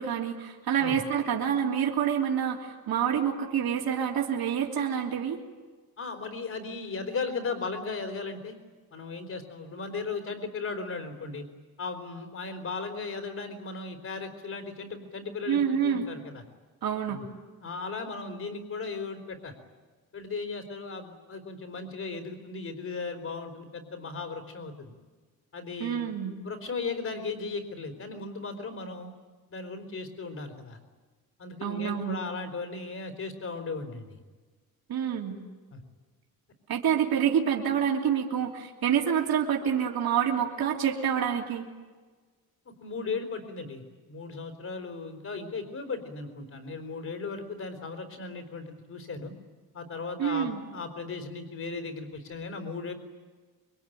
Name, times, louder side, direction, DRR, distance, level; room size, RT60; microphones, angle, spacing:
voice 1, 0.0-5.4 15.5-16.1 16.8-17.2 25.8-26.3 31.6-32.2 34.9-35.4 36.7-41.7 50.2-50.6, right 8 dB, 70° right, -1 dB, 3.1 m, -27 dB
voice 2, 6.0-8.6 8.9-11.4 11.8-16.4 17.1-17.3 17.6-19.5 20.1-24.9 25.5-26.1 26.4-29.1 29.5-30.8 31.4-34.2 35.7-35.8 42.8-43.8 44.1-49.3 49.7-52.9, left 4 dB, 45° left, 4 dB, 4.0 m, -36 dB
27.0 x 24.5 x 9.2 m, 1.4 s
wide cardioid pair, 170°, 37 cm